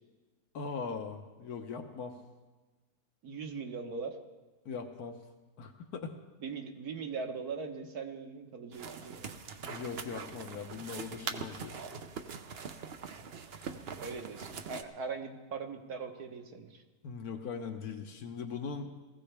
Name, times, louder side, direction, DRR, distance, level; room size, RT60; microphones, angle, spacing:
voice 1, 0.5-2.1 4.6-5.2 5.6-6.1 9.7-11.8 17.0-18.9, left 5 dB, 80° left, 5 dB, 1.5 m, -40 dB
voice 2, 3.2-4.2 6.4-9.3 14.0-16.8, right 5 dB, 90° right, 4 dB, 1.7 m, -40 dB
sound 1, 8.7-14.8, right 5 dB, 50° right, 0.9 m, -42 dB
19.5 x 15.5 x 3.4 m, 1.3 s
omnidirectional pair, 1.6 m